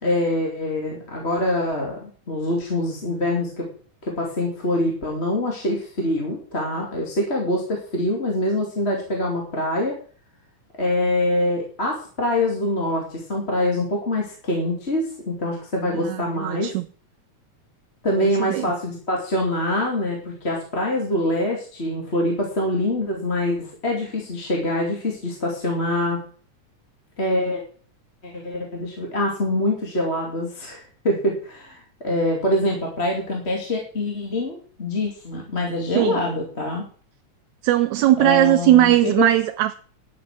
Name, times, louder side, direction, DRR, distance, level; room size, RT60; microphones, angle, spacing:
voice 1, 0.0-3.7 4.0-10.0 10.8-16.7 18.0-26.2 27.2-27.6 28.2-36.9 38.2-39.3, left 1 dB, 20° left, 2.7 m, -25 dB
voice 2, 16.1-16.8 18.2-18.7 36.0-36.2 37.6-39.7, right 14 dB, 80° right, 1.9 m, -19 dB
12.0 x 8.6 x 6.2 m
omnidirectional pair, 3.4 m